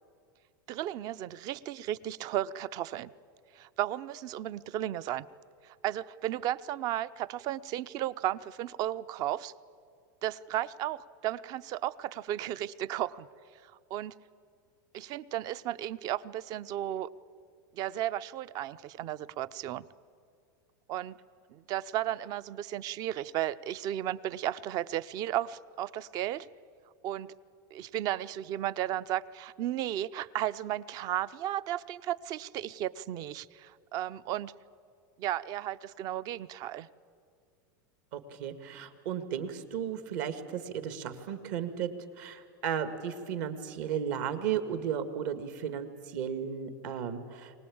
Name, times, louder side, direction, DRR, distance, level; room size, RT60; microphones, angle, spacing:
voice 1, 0.7-3.1 3.5-5.2 5.6-9.5 10.2-13.3 13.6-14.1 14.9-17.1 17.7-19.8 20.9-21.2 21.5-26.5 27.0-27.3 27.7-34.5 35.2-36.9, right 12 dB, 35° right, 18 dB, 0.5 m, -34 dB
voice 2, 38.1-41.9 42.2-47.6, right 8 dB, 60° right, 9 dB, 1.9 m, -34 dB
24.0 x 19.0 x 8.6 m, 2.4 s
supercardioid pair, 150°, 11 cm